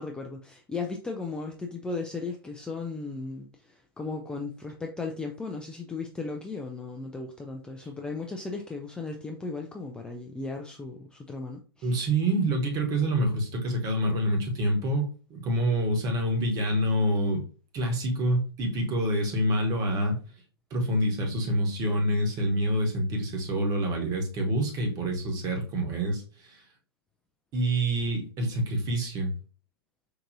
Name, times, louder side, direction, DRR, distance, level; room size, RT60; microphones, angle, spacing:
voice 1, 0.0-12.0, left 3 dB, 5° left, 1 dB, 0.4 m, -36 dB
voice 2, 11.8-17.4 17.7-20.2 20.7-26.6 27.5-29.3, right 1 dB, 30° right, 2 dB, 1.1 m, -27 dB
4.8 x 2.6 x 2.6 m, 0.37 s
figure-of-eight pair, 105°, 13 cm